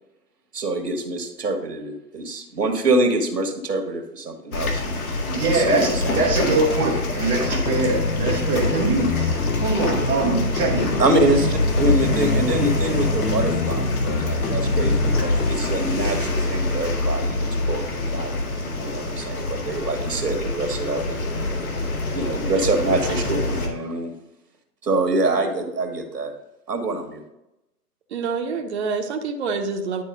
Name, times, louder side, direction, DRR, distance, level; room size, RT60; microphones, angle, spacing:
voice 1, 0.5-4.8 5.5-6.4 11.0-18.4 18.8-21.2 22.1-24.1 24.8-26.3 26.7-27.2, right 2 dB, 85° right, 4 dB, 1.7 m, -25 dB
sound 1, 4.5-23.7, left 2 dB, 60° left, 1.8 m, -25 dB
voice 2, 5.3-11.0, right 3 dB, 5° right, -8 dB, 0.5 m, -23 dB
sound 2, 7.4-15.5, left 4 dB, 80° left, 1.0 m, -27 dB
voice 3, 28.1-30.0, right 5 dB, 45° right, 3 dB, 0.9 m, -27 dB
10.5 x 4.5 x 3.7 m, 0.91 s
figure-of-eight pair, 140°, 47 cm